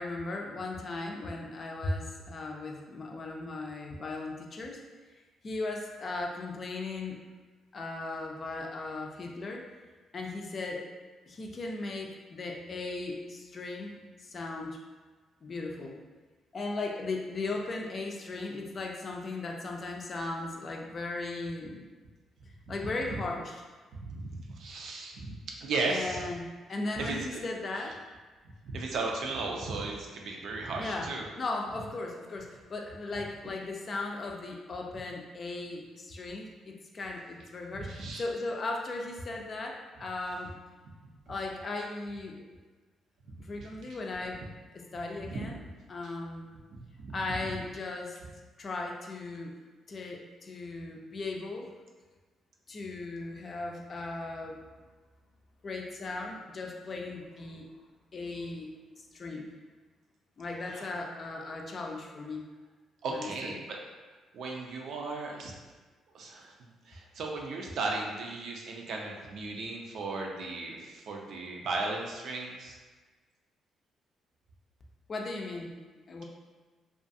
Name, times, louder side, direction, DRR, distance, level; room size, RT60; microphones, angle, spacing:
voice 1, 0.0-4.8 5.4-7.2 7.7-9.7 10.1-10.9 11.3-13.9 14.2-14.8 15.4-16.0 16.5-21.8 22.7-23.5 25.8-28.0 30.8-31.1 31.4-40.6 41.3-42.5 43.4-44.4 44.7-45.6 45.9-46.5 47.1-48.2 48.6-49.6 49.9-51.7 52.7-54.6 55.6-57.7 58.1-58.7 59.1-59.5 60.4-62.4 63.1-63.5 75.1-75.8 76.1-76.2, left 2 dB, 45° left, 1 dB, 0.4 m, -37 dB
voice 2, 24.0-26.3 27.0-27.4 28.6-31.3 37.8-38.2 45.2-45.5 46.7-47.1 60.7-60.9 63.0-63.8 64.3-65.5 66.1-66.5 66.9-72.8, right 3 dB, 70° right, 0 dB, 0.4 m, -36 dB
2.4 x 2.3 x 2.6 m, 1.3 s
cardioid pair, 90°, 0 cm